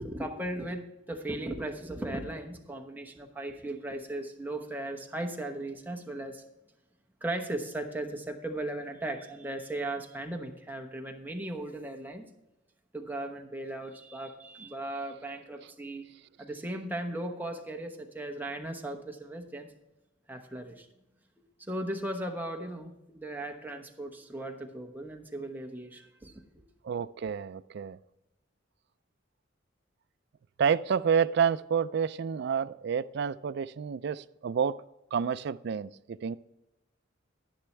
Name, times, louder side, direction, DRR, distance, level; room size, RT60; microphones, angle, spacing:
voice 1, 0.0-6.4 7.2-12.3 12.9-16.1 16.4-19.7 20.3-20.9 21.6-26.6, right 1 dB, 10° right, 3 dB, 1.1 m, -37 dB
voice 2, 26.8-28.0 30.6-34.8 35.1-36.4, right 7 dB, 60° right, 14 dB, 0.3 m, -29 dB
11.0 x 10.0 x 3.3 m, 0.93 s
head